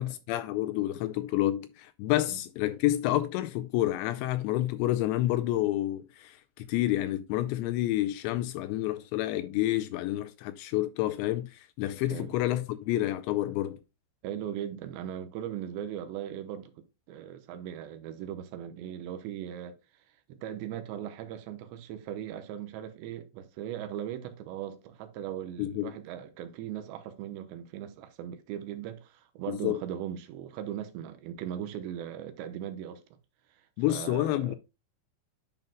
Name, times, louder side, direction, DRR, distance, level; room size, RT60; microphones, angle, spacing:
voice 1, 0.0-13.8 25.6-25.9 29.5-29.8 33.8-34.6, left 15 dB, 85° left, 2.6 m, -29 dB
voice 2, 14.2-19.8 20.3-33.0 33.6-34.6, right 10 dB, 80° right, 2.9 m, -39 dB
10.5 x 5.6 x 2.2 m
omnidirectional pair, 5.4 m